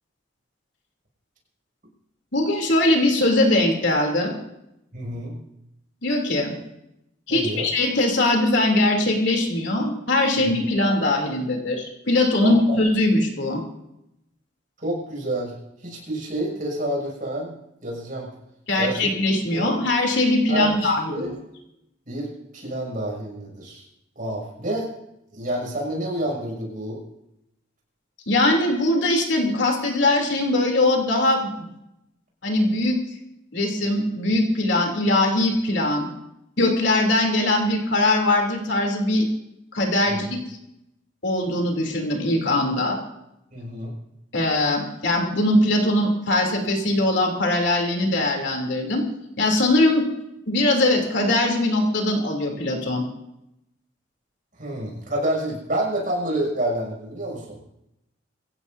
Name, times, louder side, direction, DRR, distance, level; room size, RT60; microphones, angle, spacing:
voice 1, 2.3-4.3 6.0-6.5 7.3-13.6 18.7-21.3 28.3-31.7 32.4-33.0 33.5-36.1 36.6-39.2 39.7-40.4 41.2-43.0 44.3-49.0 49.4-50.0 50.5-53.0, left 1 dB, 70° left, 1 dB, 3.2 m, -21 dB
voice 2, 4.9-5.4 7.3-7.7 10.3-10.5 12.4-12.8 14.8-18.3 18.8-19.1 19.5-19.7 20.5-21.4 22.1-23.8 24.1-24.9 25.3-27.0 40.0-40.2 43.5-43.9 54.6-57.6, right 1 dB, 45° right, -2 dB, 6.8 m, -28 dB
24.5 x 16.0 x 2.8 m, 0.85 s
head